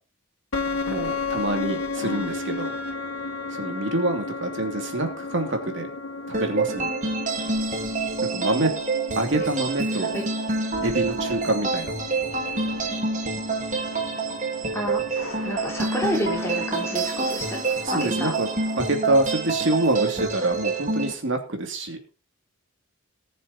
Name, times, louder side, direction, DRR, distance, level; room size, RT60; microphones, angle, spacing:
sound 1, 0.5-18.9, left 3 dB, 85° left, 2.1 m, -34 dB
voice 1, 0.9-2.7 3.5-5.9 6.3-6.9 8.3-8.7 9.2-10.2 10.8-11.9 17.8-18.5 18.8-22.0, right 2 dB, 60° right, 4 dB, 2.8 m, -26 dB
voice 2, 2.0-2.3 10.1-10.3 14.7-17.6 17.9-18.4 20.0-20.3, equal, 10° left, -1 dB, 3.9 m, -30 dB
sound 2, 6.3-21.1, right 3 dB, 40° right, 2.2 m, -27 dB
19.5 x 7.1 x 4.4 m, 0.35 s
head